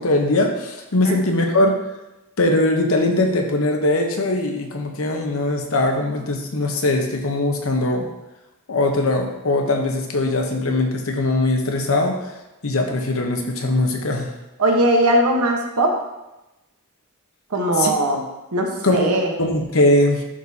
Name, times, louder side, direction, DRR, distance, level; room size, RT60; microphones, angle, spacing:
voice 1, 0.0-1.7 2.4-8.1 8.7-12.2 12.6-14.3 17.8-17.9 18.8-20.2, left 2 dB, 70° left, 3 dB, 1.0 m, -20 dB
voice 2, 14.6-16.0 17.5-18.2 18.5-19.3, right 1 dB, 90° right, 2 dB, 1.2 m, -19 dB
11.0 x 4.3 x 2.8 m, 0.99 s
head